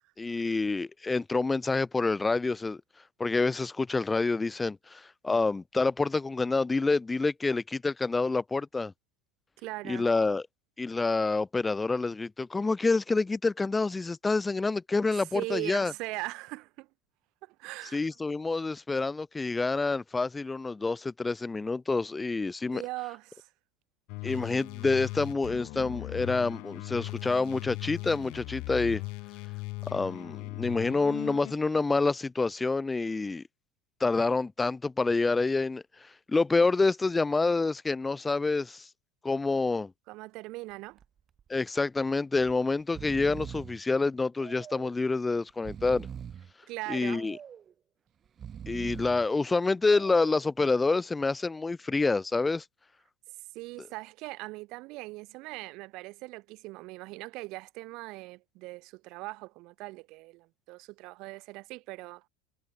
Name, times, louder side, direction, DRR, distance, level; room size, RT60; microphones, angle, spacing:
voice 1, 0.2-2.8 3.2-8.9 9.9-10.5 10.8-15.9 17.9-22.8 24.2-29.0 29.9-33.4 34.0-35.8 36.3-38.9 39.2-39.9 41.5-46.1 46.9-47.4 48.7-52.6, left 3 dB, 15° left, 0.4 m, -27 dB
voice 2, 9.6-10.1 15.1-16.9 17.4-18.0 22.7-23.5 40.1-41.0 46.7-47.3 53.5-62.3, right 22 dB, 60° right, 0.8 m, -40 dB
sound 1, 24.1-31.5, left 28 dB, 65° left, 0.8 m, -39 dB
Breathing, 40.7-41.1 41.4-41.5 42.3-42.5 42.8-43.8 44.4-45.0 45.5-46.5 47.1-47.7 48.3-49.3 49.8-50.5, right 8 dB, 35° right, 2.6 m, -43 dB
hypercardioid pair, 100°, 0 cm